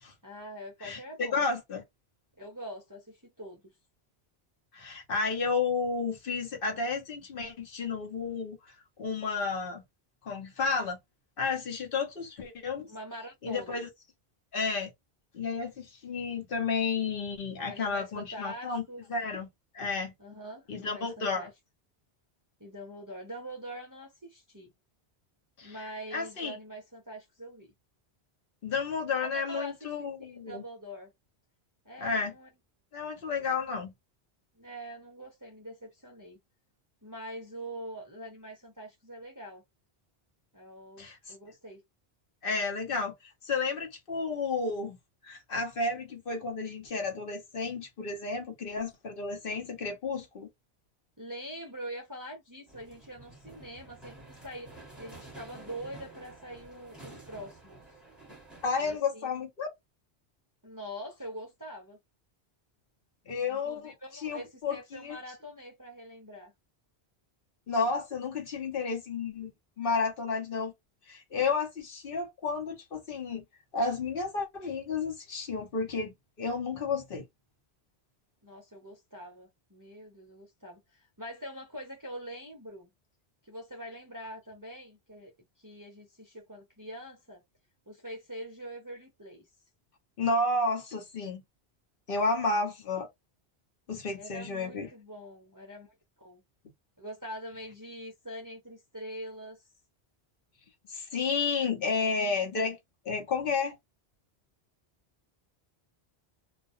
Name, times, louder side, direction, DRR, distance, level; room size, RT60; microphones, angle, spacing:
voice 1, 0.2-1.4 2.4-3.7 12.9-13.9 17.6-19.0 20.2-21.5 22.6-24.7 25.6-27.7 29.2-31.1 31.8-32.5 34.6-36.4 37.0-39.6 40.5-41.8 51.2-57.8 58.8-59.3 60.6-62.0 63.5-66.5 78.4-82.9 83.4-85.3 85.6-87.4 87.9-89.5 94.1-96.4 97.0-99.7, equal, 25° right, 0.5 m, -44 dB
voice 2, 0.8-1.8 4.7-8.6 9.0-9.8 10.3-11.0 11.4-12.9 13.4-13.9 14.5-14.9 15.3-18.8 19.1-19.5 19.7-20.1 20.7-21.5 25.6-25.7 26.1-26.5 28.6-30.6 32.0-32.3 32.9-33.9 41.0-41.2 42.4-43.1 43.4-45.0 45.2-50.5 58.6-59.7 63.3-63.9 64.2-65.2 67.7-69.5 69.8-70.7 71.1-73.4 73.7-77.2 90.2-91.4 92.1-93.1 93.9-94.9 100.9-102.8 103.0-103.8, left 4 dB, 60° left, 1.0 m, -31 dB
sound 1, 52.7-59.0, right 2 dB, ahead, 1.1 m, -50 dB
2.4 x 2.1 x 2.6 m
omnidirectional pair, 1.1 m